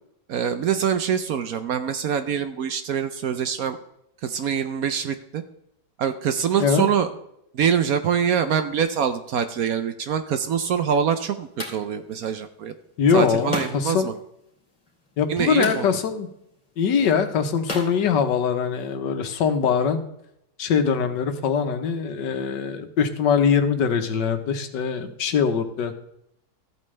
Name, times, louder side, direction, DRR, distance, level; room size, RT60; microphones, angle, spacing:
voice 1, 0.3-3.8 4.2-5.4 6.0-7.1 7.5-12.7 13.1-14.1 15.3-15.9, right 7 dB, 65° right, 10 dB, 1.0 m, -24 dB
sound 1, 10.4-18.9, left 2 dB, 20° left, 2.8 m, -38 dB
voice 2, 13.0-14.1 15.2-16.3 16.8-20.1 20.6-26.0, left 6 dB, 75° left, 8 dB, 1.6 m, -22 dB
14.0 x 8.7 x 3.3 m, 0.78 s
omnidirectional pair, 1.9 m